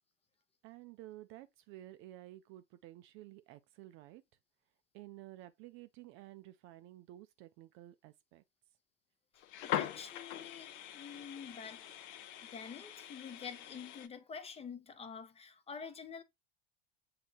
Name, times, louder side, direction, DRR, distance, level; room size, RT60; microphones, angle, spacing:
voice 1, 0.6-4.2 4.9-8.4, right 15 dB, 40° right, 0.4 m, -53 dB
sound 1, 9.4-14.1, left 11 dB, 60° left, 0.6 m, -42 dB
voice 2, 9.6-11.9 12.4-16.2, left 6 dB, 20° left, 0.6 m, -47 dB
7.2 x 2.8 x 2.3 m
hypercardioid pair, 95°, 31 cm